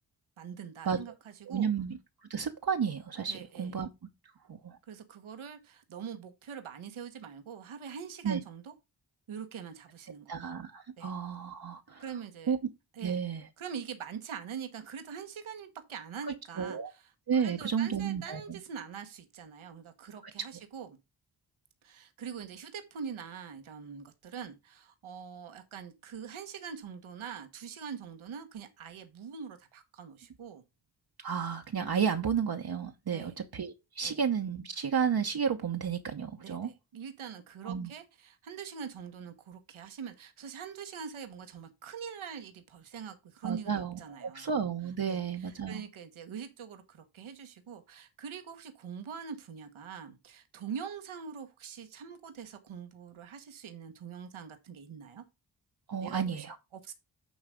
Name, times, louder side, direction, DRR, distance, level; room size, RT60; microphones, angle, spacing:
voice 1, 0.4-1.7 3.3-3.7 4.9-8.7 9.3-10.4 11.0-11.1 12.0-12.5 12.9-13.2 13.6-20.9 21.8-30.6 33.1-33.4 34.0-34.2 36.4-44.5 45.1-55.2 56.0-56.5 56.7-56.9, right 7 dB, 80° right, 1.3 m, -43 dB
voice 2, 1.5-2.0 2.3-3.9 4.5-4.8 8.2-8.4 10.3-12.0 12.5-12.6 13.0-13.4 16.6-16.9 17.3-18.6 31.2-36.7 37.6-37.9 43.4-45.8 55.9-56.6, right 7 dB, 50° right, 1.0 m, -32 dB
9.5 x 3.2 x 5.0 m
cardioid pair, 45°, 48 cm